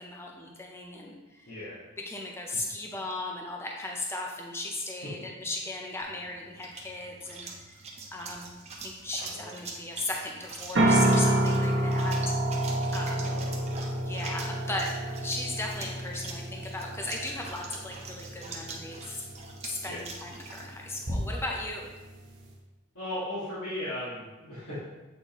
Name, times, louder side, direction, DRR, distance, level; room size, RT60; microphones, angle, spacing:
voice 1, 0.0-1.5 2.0-7.8 8.1-8.5 8.8-13.3 14.0-15.0 15.2-19.3 19.6-21.9, left 2 dB, 10° left, 0 dB, 0.6 m, -37 dB
voice 2, 1.5-1.8 9.3-9.5 13.2-13.6 19.9-20.0 22.9-24.8, left 1 dB, 90° left, -12 dB, 1.9 m, -37 dB
sound 1, 6.0-21.6, right 2 dB, 30° right, 0.8 m, -43 dB
sound 2, 10.7-22.5, right 1 dB, 55° right, 1.0 m, -30 dB
8.1 x 4.2 x 3.0 m, 1.1 s
head